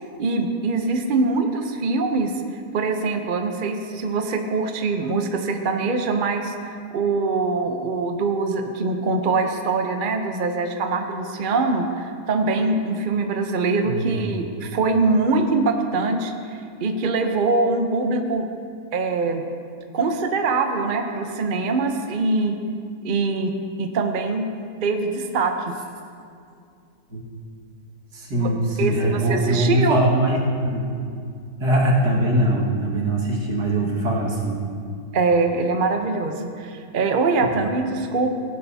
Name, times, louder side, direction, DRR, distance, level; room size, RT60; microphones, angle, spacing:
voice 1, 0.2-2.3 2.7-18.5 18.9-19.4 19.9-22.5 23.0-23.5 23.8-24.5 24.8-25.5 28.3-28.5 28.8-30.0 35.1-38.3, right 3 dB, 45° right, 4 dB, 0.7 m, -23 dB
voice 2, 13.8-14.2 27.1-27.2 28.1-30.4 30.6-31.0 31.6-34.6, right 1 dB, 75° right, -4 dB, 2.4 m, -21 dB
17.0 x 11.5 x 2.8 m, 2.3 s
omnidirectional pair, 1.7 m